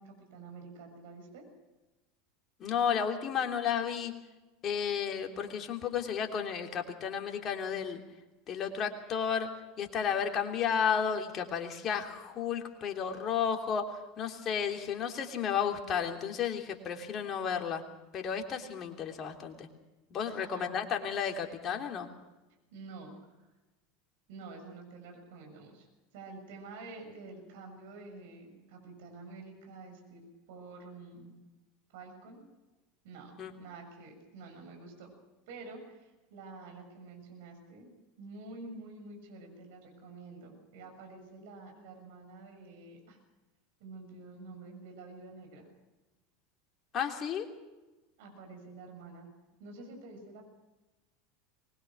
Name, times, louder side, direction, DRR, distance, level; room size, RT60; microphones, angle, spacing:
voice 1, 0.0-1.4 20.3-20.7 22.7-23.5 24.3-31.3 31.9-32.4 33.0-33.3 33.6-35.1 35.5-43.2 43.8-45.7 48.2-49.3 49.6-50.5, right 3 dB, 60° right, 4 dB, 6.8 m, -48 dB
voice 2, 2.6-4.1 4.6-8.0 8.5-9.5 9.8-17.8 18.1-19.7 20.1-22.1 33.4-33.5 46.9-47.5, left 7 dB, 40° left, 3 dB, 3.3 m, -32 dB
24.0 x 21.0 x 6.3 m, 1.1 s
figure-of-eight pair, 80°, 0 cm